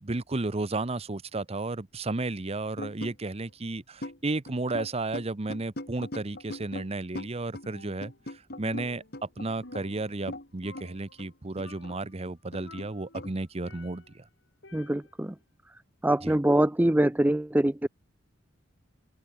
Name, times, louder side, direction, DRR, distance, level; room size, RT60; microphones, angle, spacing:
voice 1, 0.0-14.2 16.2-16.4, right 2 dB, 35° right, 0.9 m, -33 dB
sound 1, 2.8-3.1 3.5-3.6 4.0-4.2 4.5-6.9 7.2-7.7 8.0-10.5 10.7-10.9 11.2-12.9 13.1-13.3, left 1 dB, 55° left, 6.1 m, -40 dB
Percussion, 7.6-8.3 8.6-10.4 10.6-11.3 11.6-12.1 12.6-14.2 14.6-15.3, left 2 dB, 75° left, 5.9 m, -51 dB
voice 2, 14.7-15.3 16.0-17.9, right 1 dB, 10° right, 0.5 m, -24 dB
open air
head